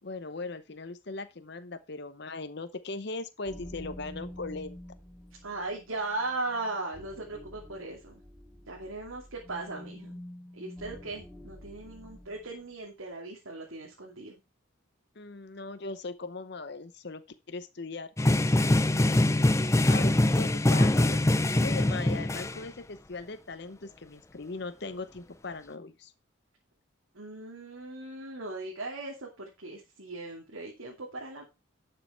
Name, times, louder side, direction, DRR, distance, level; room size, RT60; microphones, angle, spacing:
voice 1, 0.0-4.8 15.1-17.2 17.5-18.1 19.9-26.1, left 3 dB, 55° left, 11 dB, 0.8 m, -39 dB
sound 1, 3.4-12.6, left 1 dB, ahead, 2.0 m, -48 dB
voice 2, 5.4-8.2 8.7-10.2 10.5-14.4 27.1-31.4, right 2 dB, 85° right, -1 dB, 2.7 m, -38 dB
sound 2, 18.2-22.6, left 1 dB, 15° left, 0.5 m, -23 dB
11.5 x 6.7 x 4.4 m, 0.26 s
head